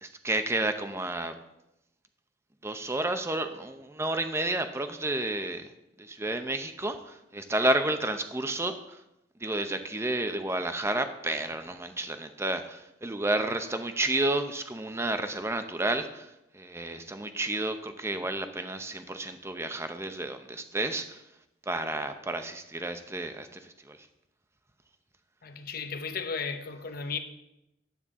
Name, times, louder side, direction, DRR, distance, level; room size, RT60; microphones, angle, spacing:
voice 1, 0.0-1.3 2.6-5.7 6.0-9.0 9.4-16.3 16.5-21.2 21.7-24.0, right 2 dB, 15° right, 0.7 m, -31 dB
voice 2, 25.4-27.2, left 5 dB, 50° left, 0.9 m, -35 dB
12.0 x 8.7 x 3.7 m
head